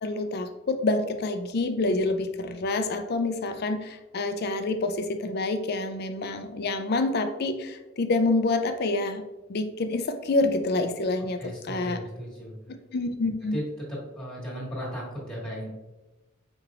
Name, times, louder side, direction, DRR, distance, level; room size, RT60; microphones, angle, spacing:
voice 1, 0.0-9.2 9.5-11.4 11.6-12.0 12.9-13.5, left 2 dB, 50° left, 8 dB, 0.4 m, -27 dB
voice 2, 11.4-12.5 13.5-13.6 13.9-15.7, equal, 5° left, -5 dB, 1.6 m, -36 dB
4.9 x 4.4 x 2.4 m, 1.1 s
head